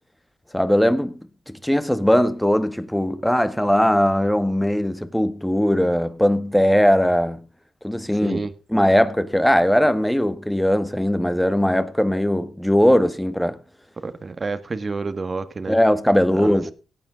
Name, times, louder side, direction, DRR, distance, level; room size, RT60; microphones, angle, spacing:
voice 1, 0.5-1.2 1.6-7.4 7.8-8.4 8.7-13.6 15.7-16.7, equal, 5° left, 1.8 m, -19 dB
voice 2, 8.2-8.5 14.0-15.8 16.3-16.6, right 4 dB, 45° right, 1.6 m, -29 dB
17.5 x 8.8 x 3.8 m
hypercardioid pair, 40°, 0 cm